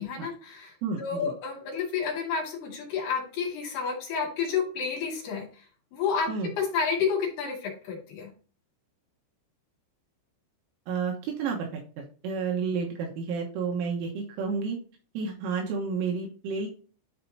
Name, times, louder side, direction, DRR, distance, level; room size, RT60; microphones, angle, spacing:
voice 1, 0.0-5.7 5.9-8.3, left 6 dB, 60° left, -1 dB, 3.9 m, -30 dB
voice 2, 0.8-1.3 6.3-6.5 10.9-14.8 15.2-16.7, right 5 dB, 80° right, 0 dB, 3.7 m, -31 dB
11.5 x 4.5 x 2.8 m, 0.39 s
omnidirectional pair, 5.8 m